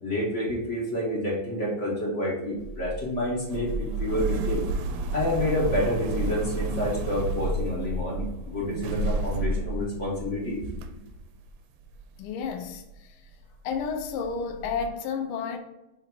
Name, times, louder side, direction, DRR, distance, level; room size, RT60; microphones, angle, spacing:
voice 1, 0.0-4.6 5.1-10.7, left 1 dB, 40° left, 1.5 m, -28 dB
sound 1, 2.6-12.2 12.4-13.0 13.4-13.5 13.7-14.9, right 2 dB, 85° right, 1.5 m, -31 dB
voice 2, 12.2-13.2 13.6-15.6, left 5 dB, 80° left, 1.6 m, -31 dB
5.6 x 3.4 x 4.8 m
omnidirectional pair, 2.4 m